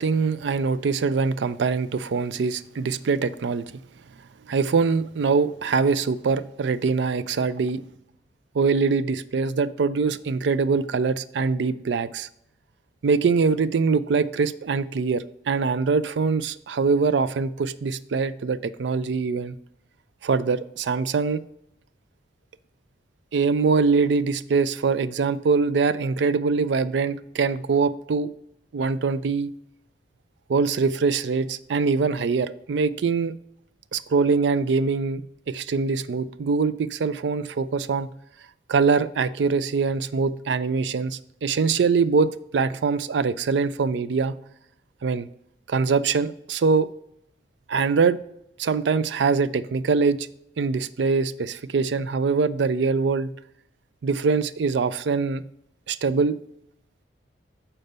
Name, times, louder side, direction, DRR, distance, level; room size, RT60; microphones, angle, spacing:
voice 1, 0.0-3.7 4.5-7.8 8.5-12.3 13.0-19.6 20.2-21.4 23.3-28.3 28.7-29.5 30.5-33.3 33.9-38.1 38.7-44.4 45.0-45.3 45.7-46.9 47.7-48.2 48.6-50.3 50.6-53.3 54.0-55.4 55.9-56.4, right 4 dB, 70° right, 0.4 m, -23 dB
6.6 x 4.4 x 6.6 m
head